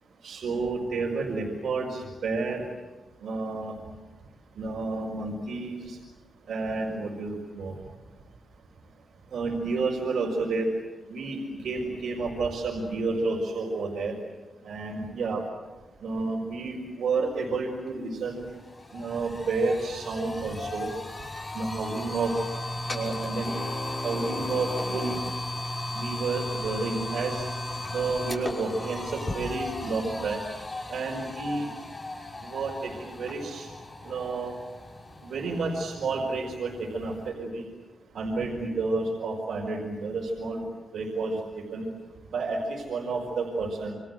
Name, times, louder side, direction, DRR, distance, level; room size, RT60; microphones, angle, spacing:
voice 1, 0.2-2.6 3.2-3.7 4.6-6.0 6.5-7.7 9.3-10.7 11.1-11.4 11.6-14.1 14.6-15.4 16.0-18.4 18.9-20.9 21.5-22.3 22.9-23.5 24.0-25.1 25.9-27.5 27.9-30.4 30.9-31.7 32.4-33.7 34.0-34.5 35.2-37.6 38.1-40.6 40.9-41.4 41.7-41.8 42.3-43.9, right 3 dB, 80° right, -2 dB, 5.1 m, -30 dB
sound 1, 17.9-18.0 18.3-37.3, left 1 dB, 30° left, 6.2 m, -36 dB
29.0 x 24.5 x 7.7 m, 1.2 s
cardioid pair, 100°, 0 cm